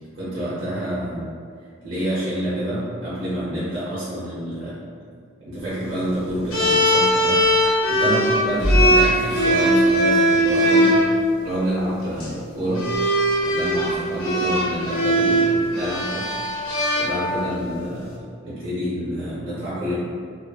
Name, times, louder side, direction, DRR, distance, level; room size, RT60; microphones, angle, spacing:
voice 1, 0.2-1.4 1.8-4.9 5.4-7.4 7.9-11.0 11.4-13.0 13.4-16.4 16.9-20.0, equal, 70° right, -11 dB, 0.8 m, -28 dB
sound 1, 6.5-11.0 12.0-12.3 12.8-17.6, right 1 dB, 90° left, 0.6 m, -19 dB
2.6 x 2.5 x 2.3 m, 2.1 s
head